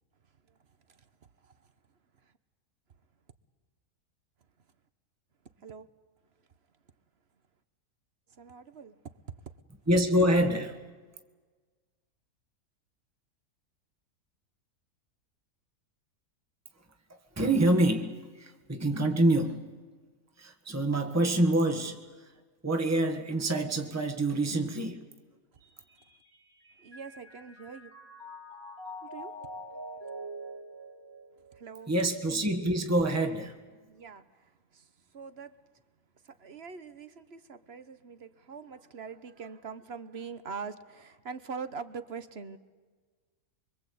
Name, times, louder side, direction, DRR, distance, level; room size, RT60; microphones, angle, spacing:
voice 1, 8.3-9.0 26.8-27.9 29.0-29.3 31.5-31.9 33.9-34.9 35.1-35.5 36.2-42.6, right 5 dB, 45° right, 12 dB, 1.2 m, -43 dB
voice 2, 9.9-10.8 17.1-19.8 20.4-22.3 22.6-25.0 31.9-33.6, right 1 dB, 10° right, 5 dB, 1.6 m, -26 dB
Mallet percussion, 25.6-32.1, equal, 65° right, 3.9 m, -45 dB
24.5 x 24.5 x 8.5 m, 1.4 s
omnidirectional pair, 1.6 m